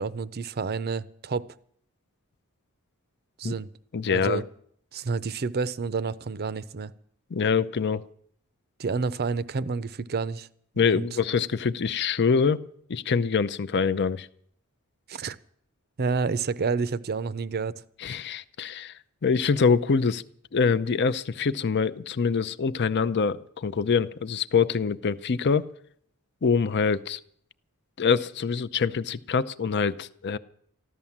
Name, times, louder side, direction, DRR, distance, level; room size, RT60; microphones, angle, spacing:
voice 1, 0.0-1.5 3.4-3.7 4.1-4.4 4.9-6.9 8.8-10.5 10.8-11.1 15.1-15.4 16.0-17.7, right 5 dB, 45° right, 16 dB, 0.5 m, -29 dB
voice 2, 3.9-4.4 7.3-8.0 10.8-12.6 12.9-14.3 18.0-18.9 19.2-20.2 20.5-25.7 26.4-27.2 28.0-30.4, left 5 dB, 50° left, 15 dB, 0.5 m, -25 dB
14.0 x 12.5 x 7.2 m, 0.65 s
head